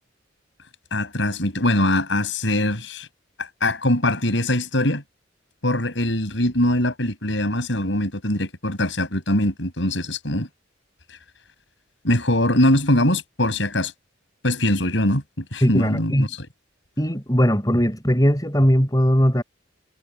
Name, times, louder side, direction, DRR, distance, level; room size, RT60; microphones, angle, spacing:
voice 1, 0.9-3.1 3.4-5.0 5.6-10.5 12.0-13.9 14.4-16.3, left 1 dB, 70° left, 7.9 m, -22 dB
voice 2, 15.6-16.3 17.0-19.4, equal, 20° left, 6.3 m, -19 dB
head